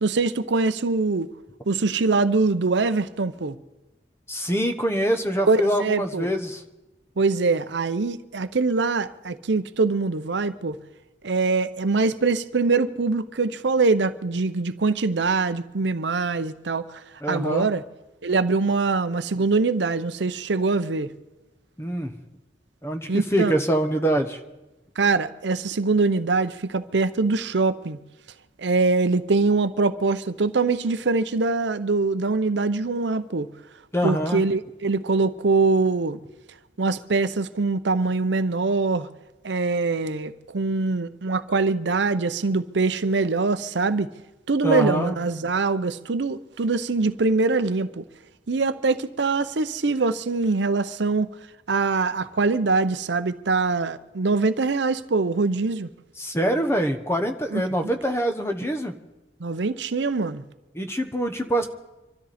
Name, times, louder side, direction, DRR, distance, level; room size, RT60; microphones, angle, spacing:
voice 1, 0.0-1.3 1.7-3.6 5.5-6.3 7.2-10.8 11.2-16.8 17.3-17.8 18.2-21.1 23.1-23.5 25.0-28.0 28.6-33.5 34.0-36.2 36.8-39.1 39.4-44.1 44.5-48.0 48.5-51.3 51.7-55.9 57.5-57.9 59.4-60.4, right 3 dB, 75° right, 0.7 m, -23 dB
voice 2, 4.3-6.6 17.2-17.7 21.8-22.1 22.8-24.4 33.9-34.4 44.6-45.1 56.2-58.9 60.7-61.7, right 1 dB, 15° left, 1.0 m, -24 dB
25.0 x 13.0 x 4.2 m
head